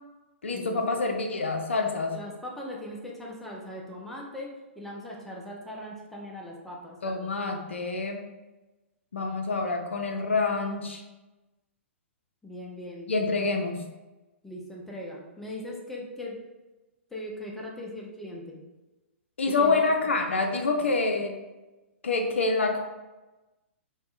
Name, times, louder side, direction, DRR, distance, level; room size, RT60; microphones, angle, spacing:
voice 1, 0.4-2.2 7.0-8.2 9.1-11.0 13.1-13.8 19.4-21.4 22.0-22.8, left 3 dB, 70° left, 3 dB, 0.4 m, -27 dB
voice 2, 2.1-7.0 12.4-13.1 14.4-16.4 17.1-18.6 19.5-19.8 20.8-20.9, left 1 dB, 5° left, -3 dB, 0.4 m, -40 dB
3.4 x 2.1 x 2.4 m, 1.1 s
figure-of-eight pair, 115°, 7 cm